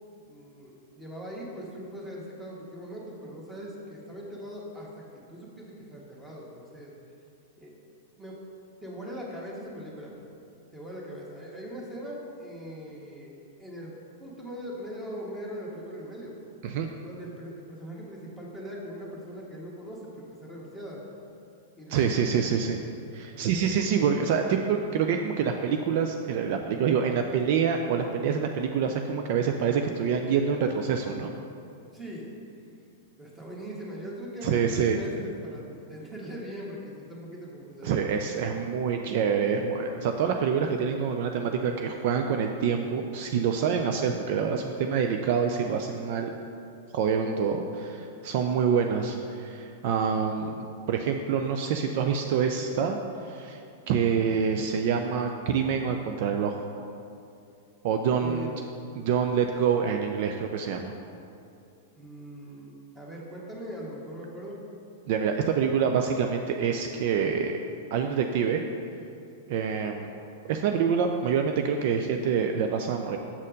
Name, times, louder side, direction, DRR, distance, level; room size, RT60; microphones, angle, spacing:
voice 1, 0.2-6.9 7.6-7.7 8.2-8.4 8.8-10.2 10.7-13.3 13.6-13.9 14.2-16.4 17.0-21.0 21.8-22.6 23.4-23.8 31.9-32.3 33.2-38.0 58.1-58.6 61.9-62.7 62.9-64.6, equal, 10° right, -4 dB, 1.6 m, -40 dB
voice 2, 21.9-22.8 23.1-31.3 34.4-35.0 37.8-46.3 46.9-53.0 53.3-53.6 53.9-56.6 57.8-58.5 59.0-60.9 65.1-67.6 67.9-68.6 69.5-70.1 70.5-73.2, right 6 dB, 55° right, 4 dB, 0.4 m, -26 dB
7.2 x 4.2 x 5.2 m, 2.6 s
hypercardioid pair, 105°, 0 cm